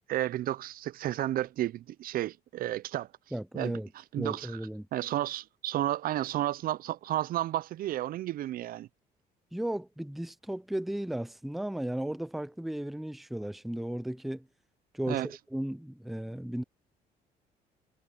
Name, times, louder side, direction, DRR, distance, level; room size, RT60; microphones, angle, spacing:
voice 1, 0.1-3.1 3.5-3.8 4.1-4.5 4.9-8.9 15.1-15.3, right 13 dB, 60° right, 0.5 m, -32 dB
voice 2, 3.3-3.9 4.2-4.9 9.5-14.5 14.9-15.2 15.5-16.6, right 1 dB, ahead, 0.5 m, -35 dB
cardioid pair, 110°, 17 cm